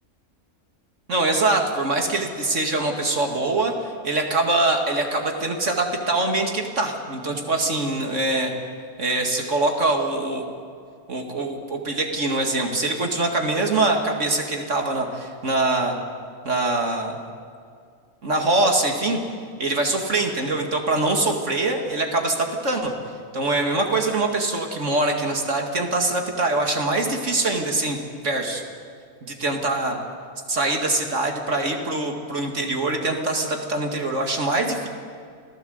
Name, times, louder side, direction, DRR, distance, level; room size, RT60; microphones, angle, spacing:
voice 1, 1.1-8.5 9.0-10.5 11.1-16.0 16.4-17.2 18.2-19.2 19.6-22.9 23.3-28.0 28.2-28.6 29.2-30.0 30.5-34.9, right 2 dB, 50° right, 2 dB, 2.5 m, -23 dB
27.5 x 17.5 x 7.9 m, 2.2 s
omnidirectional pair, 1.6 m